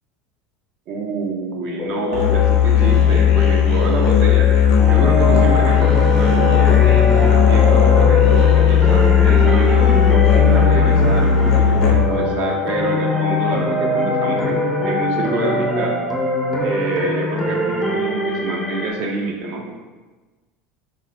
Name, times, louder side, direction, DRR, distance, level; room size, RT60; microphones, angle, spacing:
voice 1, 0.9-4.5 4.9-16.0 16.6-19.7, right 3 dB, 55° right, 1 dB, 0.6 m, -26 dB
sound 1, 1.7-15.0, left 6 dB, 45° left, 0.8 m, -27 dB
Musical instrument, 2.1-12.3, left 9 dB, 75° left, 0.6 m, -15 dB
sound 2, 4.8-18.9, equal, ahead, 0.6 m, -22 dB
3.8 x 2.1 x 3.1 m, 1.2 s
supercardioid pair, 110°, 3 cm